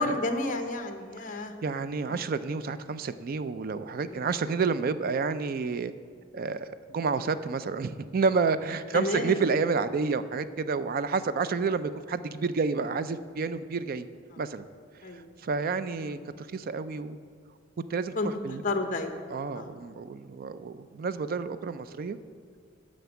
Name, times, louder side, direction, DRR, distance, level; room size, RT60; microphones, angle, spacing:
voice 1, 0.0-1.5 2.1-2.2 4.1-4.2 8.9-9.4 15.0-15.3 16.0-16.1 18.2-18.3 18.6-19.1 19.5-19.7, left 2 dB, 45° left, 6 dB, 0.8 m, -31 dB
voice 2, 1.3-5.9 6.3-14.1 14.4-14.6 15.1-17.2 17.9-18.6 19.3-22.2, right 4 dB, 50° right, 13 dB, 0.4 m, -30 dB
9.3 x 5.2 x 7.0 m, 2.1 s
head